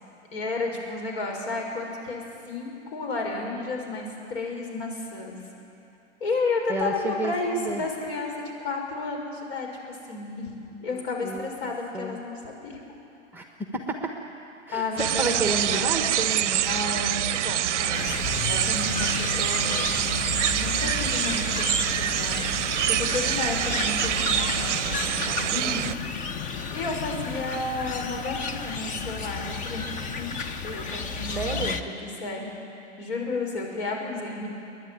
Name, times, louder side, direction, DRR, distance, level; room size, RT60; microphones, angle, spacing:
voice 1, 0.3-5.4 6.2-8.3 8.6-10.5 10.8-12.8 14.7-16.0 16.6-18.1 18.5-20.2 20.5-25.9 26.7-29.9 30.2-30.3 30.6-32.5 33.0-34.5, left 3 dB, 60° left, 0 dB, 6.1 m, -32 dB
voice 2, 6.7-7.8 10.7-10.8 11.2-11.5 11.9-12.2 13.3-13.4 13.7-14.1 14.7-16.6 31.3-31.8, right 2 dB, 5° right, 3 dB, 1.4 m, -30 dB
sound 1, 15.0-25.9, right 12 dB, 75° right, 0.6 m, -26 dB
sound 2, 17.9-31.8, left 5 dB, 20° left, 1.0 m, -32 dB
29.5 x 11.0 x 9.5 m, 2.7 s
hypercardioid pair, 125°, 36 cm